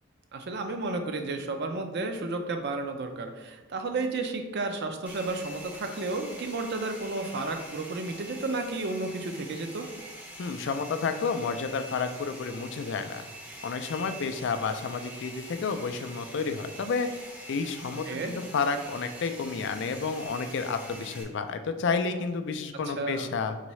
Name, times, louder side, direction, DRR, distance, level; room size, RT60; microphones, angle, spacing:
voice 1, 0.3-9.9 18.1-18.3 22.9-23.3, right 3 dB, 55° right, 6 dB, 0.5 m, -32 dB
Domestic sounds home sounds, 5.1-21.2, right 1 dB, 10° right, 0.6 m, -45 dB
voice 2, 10.4-13.3 13.6-17.2 17.5-23.6, left 5 dB, 60° left, 9 dB, 0.4 m, -30 dB
4.0 x 3.5 x 3.1 m, 1.2 s
head